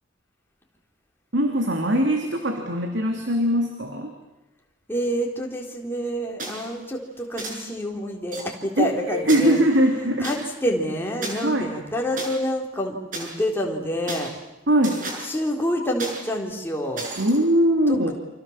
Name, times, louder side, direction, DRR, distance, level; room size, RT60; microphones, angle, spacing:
voice 1, 1.3-4.1 8.8-10.5 11.4-11.7 14.7-15.1 17.2-18.1, right 1 dB, 65° right, 3 dB, 3.1 m, -21 dB
voice 2, 4.9-9.6 10.2-14.3 15.2-17.1 17.9-18.1, equal, 10° left, 0 dB, 4.0 m, -27 dB
sound 1, 6.4-6.7 7.4-7.5 8.3-8.4 9.3-10.4 11.2-11.3 12.2-12.3 13.1-13.3 14.1-14.3 14.8-15.2 16.0-16.2 17.0-17.4, right 2 dB, 45° right, 6.8 m, -33 dB
29.5 x 26.5 x 7.4 m, 0.98 s
head